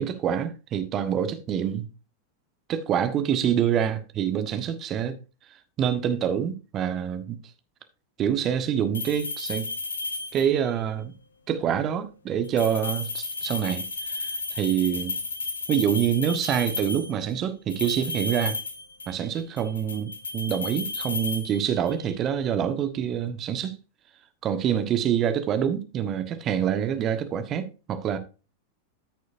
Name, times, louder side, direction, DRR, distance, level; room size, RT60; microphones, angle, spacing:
voice 1, 0.0-1.8 2.7-5.2 5.8-7.4 8.2-9.7 10.3-11.1 11.5-15.2 15.7-18.6 19.1-23.7 24.4-28.2, right 9 dB, 30° right, 1.3 m, -26 dB
sound 1, 8.9-10.7 12.4-17.2 17.7-19.3 19.6-22.0, left 3 dB, 75° left, 1.3 m, -33 dB
14.0 x 6.4 x 2.6 m
figure-of-eight pair, 90°, 0 cm